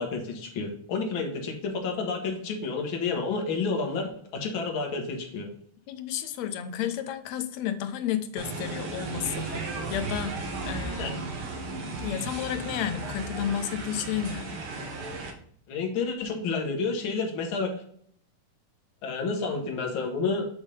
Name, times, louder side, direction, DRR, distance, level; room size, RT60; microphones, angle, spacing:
voice 1, 0.0-5.5 10.9-11.1 15.7-17.7 19.0-20.5, left 4 dB, 50° left, 2 dB, 1.7 m, -30 dB
voice 2, 5.9-10.4 10.6-11.3 11.9-14.5, left 9 dB, 75° left, 9 dB, 1.7 m, -32 dB
sound 1, 8.4-15.3, right 3 dB, 60° right, 1.5 m, -35 dB
7.3 x 3.6 x 4.8 m, 0.63 s
omnidirectional pair, 3.5 m